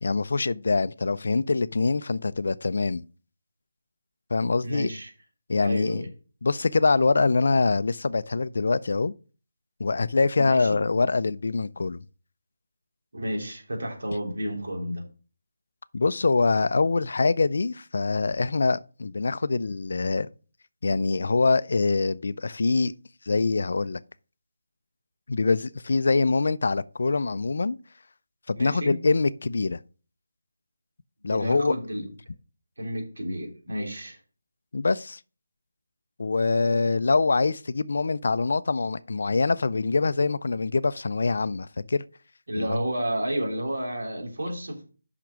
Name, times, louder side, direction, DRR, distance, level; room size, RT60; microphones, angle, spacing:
voice 1, 0.0-3.0 4.3-4.9 5.5-6.0 6.4-9.1 9.8-12.0 15.9-20.3 20.8-22.9 23.3-24.0 25.3-27.8 28.5-29.8 31.2-31.7 34.7-35.2 36.2-42.0 42.6-42.8, left 3 dB, 50° left, 0.4 m, -24 dB
voice 2, 4.6-5.1 5.6-6.1 10.4-10.8 13.1-15.0 28.6-28.9 31.2-32.1 32.8-34.2 42.5-44.8, equal, 80° right, 3.3 m, -31 dB
6.1 x 5.8 x 5.0 m
figure-of-eight pair, 175°, 0 cm